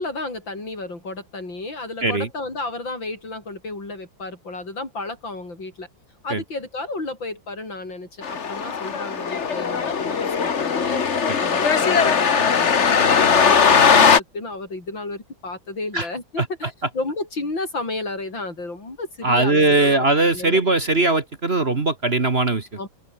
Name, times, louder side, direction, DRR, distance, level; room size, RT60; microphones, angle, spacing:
voice 1, 0.0-5.9 6.2-20.1 20.3-20.6 22.8-22.9, left 2 dB, 75° left, 7.4 m, -32 dB
sound 1, 8.2-14.2, left 6 dB, 40° left, 1.5 m, -19 dB
voice 2, 19.2-22.7, right 2 dB, 35° right, 1.8 m, -20 dB
open air
omnidirectional pair, 2.1 m